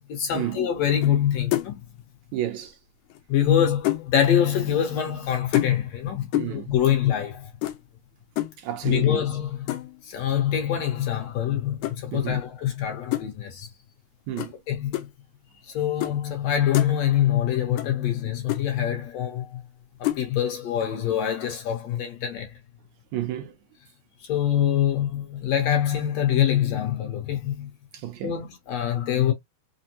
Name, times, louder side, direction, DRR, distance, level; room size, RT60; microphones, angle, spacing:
voice 1, 0.1-1.8 3.3-7.5 8.8-9.7 10.0-13.7 14.7-15.1 15.7-19.6 20.0-22.5 24.2-27.7 28.2-29.3, left 10 dB, 65° left, 2.0 m, -24 dB
sound 1, 1.0-1.2 1.5-1.9 3.1-4.1 5.5-6.0 6.3-6.7 7.6-7.8 8.4-8.6 9.7-10.0 11.8-12.0 13.1-13.3 14.4-14.5 14.9-15.1 16.0-16.2 16.5-16.9 17.8-17.9 18.2-18.3 18.5-18.6 20.0-20.2, left 16 dB, 85° left, 2.0 m, -27 dB
voice 2, 2.3-2.8 6.3-6.7 8.6-9.2 12.1-12.4 14.3-14.5 23.1-23.5 27.9-28.5, right 12 dB, 75° right, 1.9 m, -31 dB
5.2 x 2.1 x 2.9 m
omnidirectional pair, 3.5 m